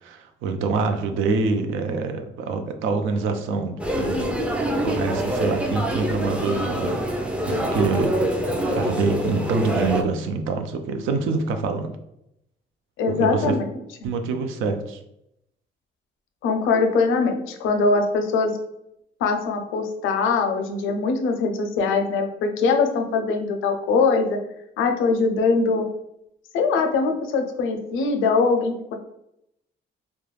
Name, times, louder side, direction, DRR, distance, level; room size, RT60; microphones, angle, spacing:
voice 1, 0.0-4.2 4.8-8.2 8.7-12.0 13.1-13.6 14.0-15.0, right 4 dB, 90° right, 6 dB, 0.4 m, -26 dB
sound 1, 3.8-10.0, equal, 5° right, 0.4 m, -25 dB
voice 2, 13.0-13.8 16.4-18.5 19.2-24.4 24.8-25.9 26.5-29.0, left 4 dB, 90° left, 5 dB, 0.5 m, -22 dB
2.3 x 2.1 x 3.1 m, 0.81 s
cardioid pair, 90°, 20 cm